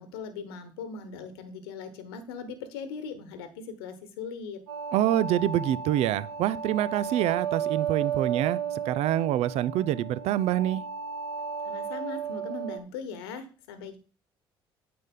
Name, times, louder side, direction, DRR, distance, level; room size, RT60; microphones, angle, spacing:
voice 1, 0.0-4.6 11.6-14.0, left 5 dB, 75° left, 1.3 m, -39 dB
sound 1, 4.7-12.8, right 7 dB, 85° right, 1.3 m, -33 dB
voice 2, 4.9-10.8, right 12 dB, 60° right, 0.5 m, -26 dB
9.4 x 7.6 x 3.7 m
figure-of-eight pair, 50°, 13 cm